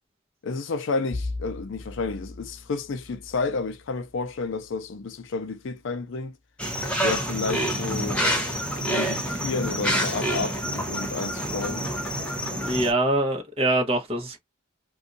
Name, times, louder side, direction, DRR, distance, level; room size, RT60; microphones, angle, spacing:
voice 1, 0.4-6.3 7.0-8.2 8.8-11.8, left 4 dB, 60° left, 0.4 m, -31 dB
Bowed string instrument, 1.1-6.2, left 2 dB, 45° right, 1.4 m, -40 dB
sound 1, 6.6-12.9, equal, 5° left, 0.8 m, -27 dB
voice 2, 12.5-14.4, right 1 dB, 25° right, 0.9 m, -24 dB
2.6 x 2.3 x 3.9 m
head